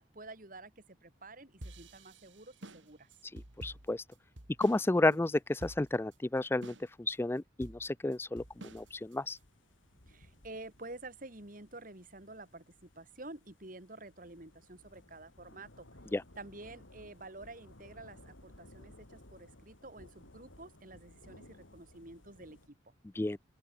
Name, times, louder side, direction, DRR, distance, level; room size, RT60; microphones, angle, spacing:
voice 1, 0.0-3.1 4.9-5.2 10.1-15.9 16.4-22.9, right 2 dB, 45° right, 2.5 m, -50 dB
sound 1, 1.6-4.9 5.1-5.2 5.6-6.1 6.6-7.1 7.6-9.4, right 1 dB, 75° right, 2.9 m, -49 dB
voice 2, 3.3-4.0 4.6-9.4 16.1-16.2 23.2-23.4, left 2 dB, 10° left, 0.3 m, -32 dB
sound 2, 8.4-22.7, left 1 dB, 85° left, 4.2 m, -59 dB
open air
head